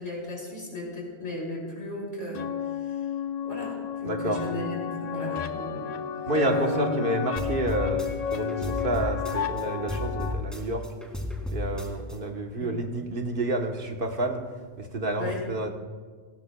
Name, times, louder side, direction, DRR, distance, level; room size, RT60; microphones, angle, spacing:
voice 1, 0.0-2.5 2.9-3.0 3.4-5.9 6.4-6.9 12.6-12.7 15.2-15.4, equal, 75° left, -2 dB, 4.5 m, -35 dB
sound 1, 2.3-10.3, left 8 dB, 50° left, 0.5 m, -32 dB
voice 2, 4.0-4.5 6.3-10.9 11.5-14.4 14.8-15.7, right 1 dB, 55° right, 3 dB, 1.3 m, -29 dB
sound 2, 7.4-9.6 9.9-12.2, left 2 dB, ahead, 1.9 m, -33 dB
18.5 x 17.5 x 2.2 m, 1.5 s
omnidirectional pair, 1.1 m